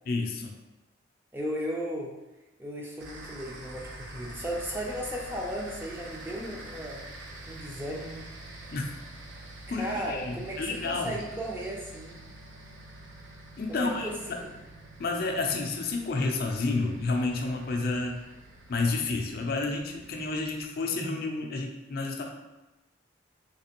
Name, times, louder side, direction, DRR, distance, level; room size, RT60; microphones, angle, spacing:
voice 1, 0.1-0.5 8.7-8.8 9.7-11.2 13.6-14.4 15.0-18.2 18.7-22.2, left 3 dB, 50° left, 2 dB, 0.4 m, -30 dB
voice 2, 1.3-2.1 2.6-7.0 7.5-8.2 9.7-12.2 13.7-14.5, equal, 10° right, -2 dB, 0.4 m, -35 dB
sound 1, 3.0-20.7, right 1 dB, 80° right, 0.6 m, -46 dB
3.2 x 2.9 x 2.9 m, 1.0 s
head